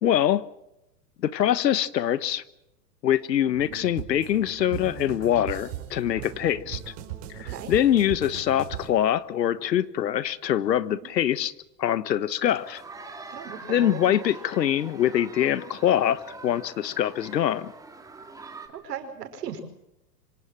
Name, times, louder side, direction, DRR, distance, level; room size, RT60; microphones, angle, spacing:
voice 1, 0.0-0.4 1.2-2.4 3.0-6.9 7.3-11.5 11.8-12.8 13.7-17.7, left 11 dB, 90° left, 1.4 m, -24 dB
sound 1, 3.5-8.9, right 11 dB, 50° right, 5.1 m, -38 dB
sound 2, 12.5-18.7, right 3 dB, 5° right, 2.6 m, -44 dB
voice 2, 13.3-14.2 18.8-19.6, right 8 dB, 70° right, 5.3 m, -37 dB
26.0 x 17.5 x 7.6 m
hypercardioid pair, 140°, 48 cm